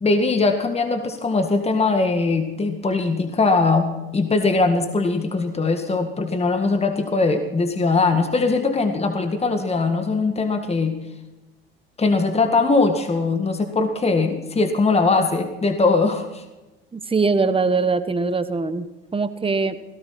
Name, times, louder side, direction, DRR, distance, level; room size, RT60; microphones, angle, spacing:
voice 1, 0.0-11.0 12.0-16.4, left 3 dB, 20° left, 6 dB, 1.9 m, -21 dB
voice 2, 16.9-18.9 19.1-19.8, right 4 dB, 20° right, 11 dB, 1.4 m, -22 dB
17.5 x 16.5 x 4.3 m, 1.0 s
hypercardioid pair, 65°, 30 cm